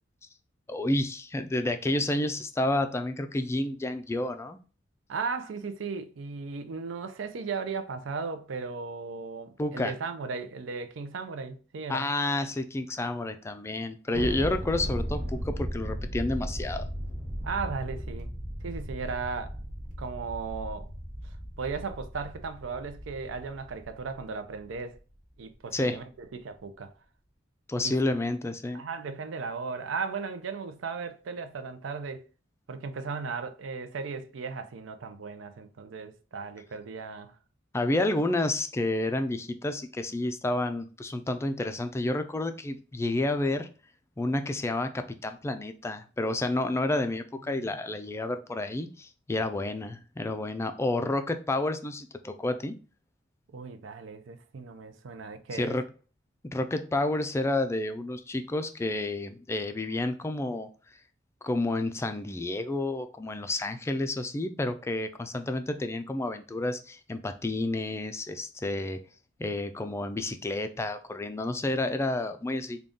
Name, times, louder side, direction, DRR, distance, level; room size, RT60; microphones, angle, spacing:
voice 1, 0.7-4.6 9.6-9.9 11.9-16.8 25.7-26.0 27.7-28.8 37.7-43.7 44.2-52.8 55.5-55.8 56.5-60.7 61.4-69.0 69.4-72.8, left 2 dB, 15° left, 0.3 m, -30 dB
voice 2, 5.1-12.1 17.4-18.3 18.6-19.6 20.0-20.9 21.6-25.0 25.4-26.9 27.8-27.9 28.7-32.2 32.7-37.4 47.5-47.8 53.5-55.8, right 5 dB, 80° right, 0.5 m, -36 dB
Thunder, 14.1-24.8, equal, 40° right, 1.1 m, -36 dB
3.8 x 2.3 x 3.6 m
head